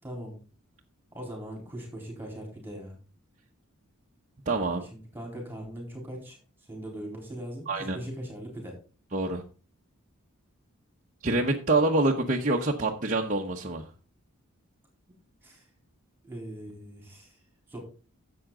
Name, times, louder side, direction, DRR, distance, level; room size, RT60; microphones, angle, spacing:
voice 1, 0.0-0.4 1.1-3.0 4.9-6.4 6.7-8.7 15.4-15.6 16.2-17.3 17.7-17.8, right 1 dB, 10° right, 0 dB, 4.1 m, -40 dB
voice 2, 4.5-4.8 7.7-8.0 9.1-9.4 11.2-13.9, right 2 dB, 35° right, -1 dB, 1.0 m, -26 dB
11.0 x 7.8 x 3.8 m, 0.34 s
head